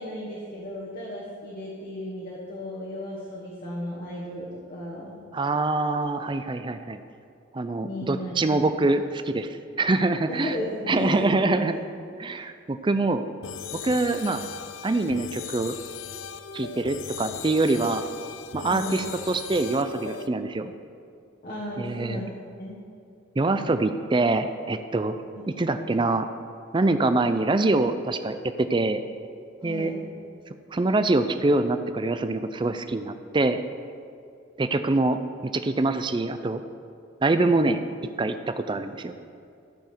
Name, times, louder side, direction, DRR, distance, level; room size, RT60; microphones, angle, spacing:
voice 1, 0.0-5.1 7.8-8.9 10.3-11.3 11.7-11.8 18.7-19.1 21.4-22.3 22.6-22.8 29.6-30.1, left 1 dB, 45° left, -5 dB, 1.4 m, -35 dB
voice 2, 5.3-7.0 7.5-9.5 9.8-10.5 10.9-11.7 12.2-13.2 13.8-14.4 14.8-15.8 16.5-18.0 18.5-20.7 21.8-22.2 23.4-25.1 25.6-26.3 26.7-29.0 29.6-29.9 30.7-33.6 34.6-36.6 37.2-37.8 38.2-39.1, right 2 dB, 25° right, 10 dB, 0.4 m, -24 dB
sound 1, 13.4-20.3, left 8 dB, 80° left, 0.5 m, -38 dB
13.0 x 7.0 x 4.5 m, 2.5 s
head